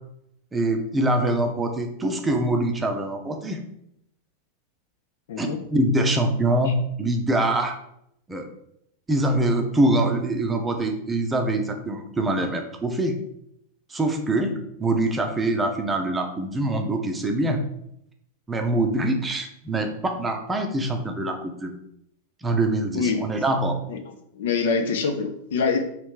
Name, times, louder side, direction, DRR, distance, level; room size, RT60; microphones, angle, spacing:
voice 1, 0.5-3.6 5.4-7.8 8.3-8.5 9.1-13.1 13.9-17.6 18.5-21.7 22.4-23.8, right 1 dB, 15° right, 4 dB, 0.6 m, -24 dB
voice 2, 5.3-5.6 6.7-6.8 22.9-23.2 23.9-24.0 24.3-25.8, left 5 dB, 60° left, 6 dB, 0.5 m, -25 dB
3.3 x 3.2 x 4.7 m, 0.77 s
figure-of-eight pair, 90°, 0 cm